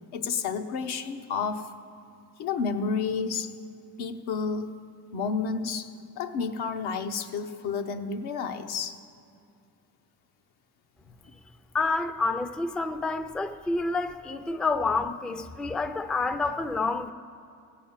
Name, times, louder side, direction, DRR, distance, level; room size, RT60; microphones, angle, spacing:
voice 1, 0.1-1.7 2.4-3.5 4.0-4.7 5.1-9.0 11.1-11.4, left 5 dB, 85° left, 6 dB, 0.9 m, -31 dB
voice 2, 11.7-17.1, left 3 dB, ahead, 10 dB, 0.3 m, -28 dB
15.5 x 7.5 x 7.2 m, 2.4 s
cardioid pair, 95°, 37 cm